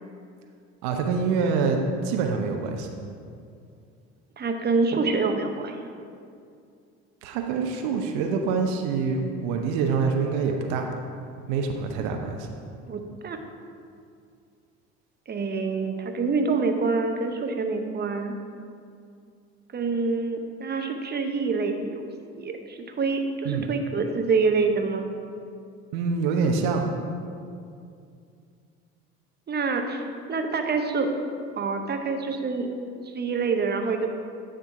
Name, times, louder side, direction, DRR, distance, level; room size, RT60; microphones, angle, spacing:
voice 1, 0.8-2.9 7.2-10.9 11.5-12.6 23.5-23.7 25.9-26.9, right 5 dB, 70° right, 3 dB, 0.8 m, -26 dB
voice 2, 4.4-5.9 12.9-13.4 15.3-18.3 19.7-25.0 29.5-31.1 31.5-32.7 33.0-34.1, right 4 dB, 30° right, 5 dB, 0.8 m, -26 dB
9.9 x 3.7 x 4.7 m, 2.3 s
hypercardioid pair, 70°, 34 cm